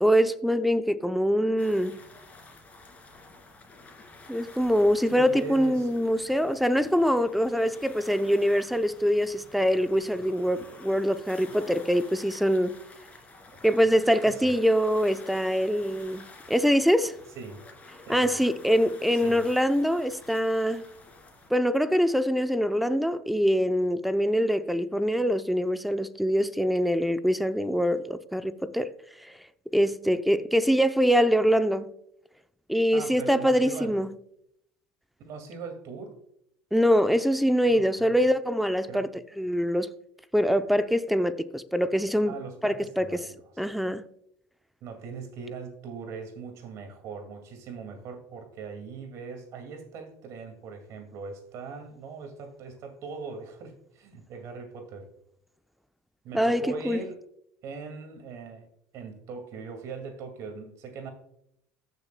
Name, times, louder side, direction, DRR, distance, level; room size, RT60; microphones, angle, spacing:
voice 1, 0.0-1.9 4.3-12.7 13.6-17.2 18.1-20.8 21.5-28.9 29.7-31.9 32.7-34.1 36.7-39.1 39.4-39.9 40.3-42.4 42.6-43.1 43.6-44.0 56.3-57.0, equal, ahead, 0.6 m, -24 dB
sound 1, 1.6-21.5, left 2 dB, 25° left, 2.6 m, -50 dB
voice 2, 5.0-5.9 14.2-14.5 17.4-17.6 18.0-18.3 19.1-19.4 32.9-33.9 35.3-36.2 37.7-38.3 38.9-39.1 42.3-43.3 44.8-55.1 56.2-57.2 57.6-58.7 58.9-61.1, right 5 dB, 60° right, 2.3 m, -40 dB
14.5 x 6.7 x 2.3 m
supercardioid pair, 95°, 6 cm